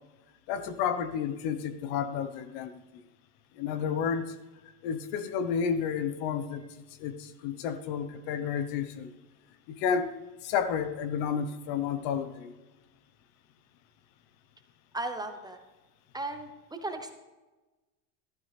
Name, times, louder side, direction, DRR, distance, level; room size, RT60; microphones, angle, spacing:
voice 1, 0.5-3.0 3.6-4.4 4.8-6.6 7.0-9.1 9.7-10.1 10.4-12.5, left 7 dB, 55° left, 1.1 m, -31 dB
voice 2, 14.9-15.6 16.1-17.2, right 2 dB, 10° right, 0.9 m, -36 dB
14.5 x 13.0 x 3.4 m
supercardioid pair, 135°, 44 cm